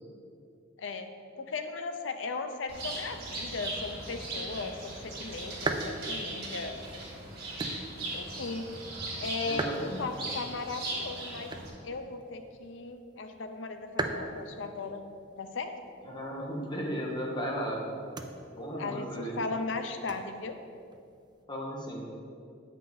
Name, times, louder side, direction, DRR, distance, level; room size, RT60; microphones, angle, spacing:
voice 1, 0.8-6.7 8.1-8.7 9.2-11.5 11.8-15.0 15.4-15.7 18.8-20.6, left 3 dB, 75° left, 7 dB, 0.6 m, -37 dB
Bird, 2.7-11.7, right 2 dB, 55° right, 1.9 m, -39 dB
sound 1, 4.4-21.4, right 2 dB, 25° right, 0.4 m, -42 dB
voice 2, 9.4-10.3 16.0-18.0 18.5-19.4 21.5-22.1, equal, 25° left, -2 dB, 1.1 m, -35 dB
8.6 x 5.4 x 4.1 m, 2.5 s
head